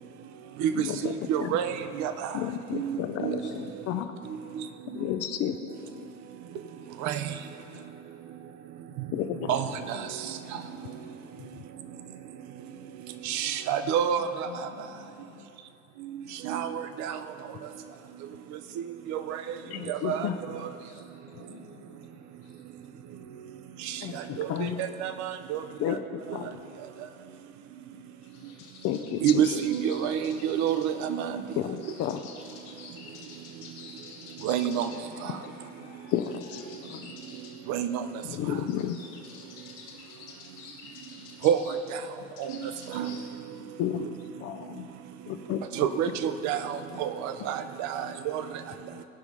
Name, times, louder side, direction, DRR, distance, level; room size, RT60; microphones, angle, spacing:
voice 1, 0.7-1.6 2.3-4.1 4.9-6.1 9.1-9.8 16.6-16.7 19.7-20.4 24.0-24.8 25.8-26.6 28.8-29.6 31.6-32.2 36.1-37.1 38.2-39.0 43.8-44.9 45.3-45.6, left 10 dB, 35° left, 8 dB, 0.5 m, -32 dB
voice 2, 1.3-1.7 2.0-2.1 2.7-3.4 7.0-7.2 9.5-9.6 13.3-14.3 16.5-16.7 17.0-17.1 19.1-19.4 19.9-20.3 24.4-24.7 25.0-25.6 29.2-31.3 34.4-34.9 37.7-38.0 41.4-41.6 42.9-43.2 45.8-46.6 47.0-48.0, right 9 dB, 40° right, 9 dB, 0.7 m, -27 dB
voice 3, 10.5-11.2 14.5-15.5 19.7-19.9 20.2-21.0 21.3-22.0 35.8-35.9 46.9-47.0 48.0-48.1 48.9-49.0, left 6 dB, 75° left, -2 dB, 1.0 m, -47 dB
sound 1, 28.2-43.3, left 4 dB, 55° left, 1.9 m, -49 dB
17.5 x 5.8 x 4.0 m, 2.8 s
figure-of-eight pair, 70°, 44 cm